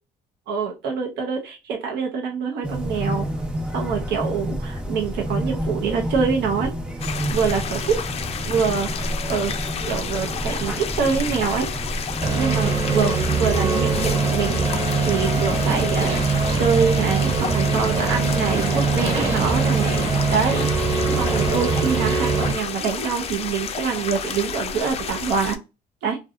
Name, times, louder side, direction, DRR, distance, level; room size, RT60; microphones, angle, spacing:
voice 1, 0.5-3.3 3.7-6.7 7.3-8.0 8.5-9.5 9.9-11.7 12.3-20.7 21.2-25.6 26.0-26.2, right 6 dB, 75° right, 2 dB, 0.7 m, -25 dB
sound 1, 2.6-22.1, equal, 5° right, 0.6 m, -30 dB
sound 2, 7.0-25.6, left 6 dB, 40° left, 0.4 m, -30 dB
sound 3, 12.2-22.5, right 5 dB, 35° right, 1.1 m, -22 dB
2.7 x 2.2 x 2.4 m, 0.26 s
cardioid pair, 110°, 17 cm